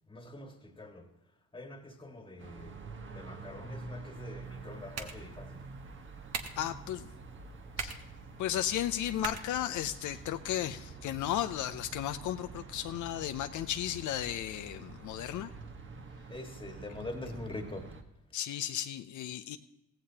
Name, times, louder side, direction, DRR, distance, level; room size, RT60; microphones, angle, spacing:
voice 1, 0.0-1.1 1.5-2.8 3.1-5.6 16.3-17.9, left 2 dB, 15° left, 1.7 m, -44 dB
sound 1, 2.4-18.0, right 3 dB, 40° right, 1.3 m, -47 dB
sound 2, 4.4-10.4, right 5 dB, 60° right, 1.3 m, -45 dB
voice 2, 6.6-7.1 7.8-8.0 8.4-15.5 18.3-19.6, left 11 dB, 80° left, 0.6 m, -34 dB
15.5 x 15.5 x 2.9 m
cardioid pair, 90°, 30 cm